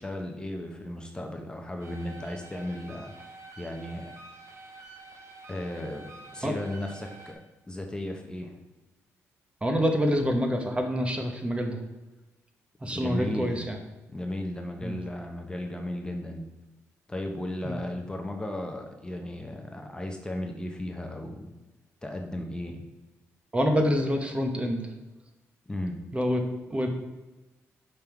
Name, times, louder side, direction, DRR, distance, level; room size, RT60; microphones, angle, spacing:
voice 1, 0.0-3.2 3.6-4.1 5.5-7.4 7.7-8.6 12.8-13.7 14.1-16.5 17.1-21.5 22.0-22.8 25.7-26.0, left 1 dB, 15° left, 3 dB, 0.9 m, -35 dB
sound 1, 1.8-7.3, right 3 dB, 65° right, 1.5 m, -48 dB
voice 2, 9.6-11.8 12.8-13.8 14.8-15.0 17.6-17.7 23.5-24.9 26.1-26.4 26.7-26.9, equal, 20° right, 4 dB, 1.0 m, -26 dB
5.5 x 5.4 x 4.6 m, 1.1 s
cardioid pair, 80°, 6 cm